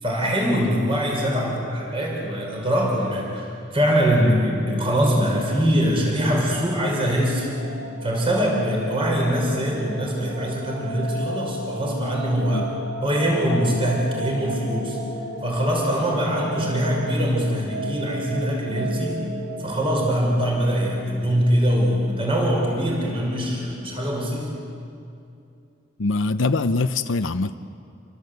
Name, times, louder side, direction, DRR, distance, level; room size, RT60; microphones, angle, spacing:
voice 1, 0.0-7.5 8.0-12.7 13.0-15.0 15.4-19.3 19.6-24.5, equal, 30° right, -1 dB, 5.4 m, -23 dB
sound 1, 7.2-22.0, right 1 dB, 85° right, 4.5 m, -34 dB
voice 2, 26.0-27.5, left 3 dB, 80° left, 8 dB, 0.7 m, -23 dB
28.5 x 24.0 x 8.1 m, 2.6 s
head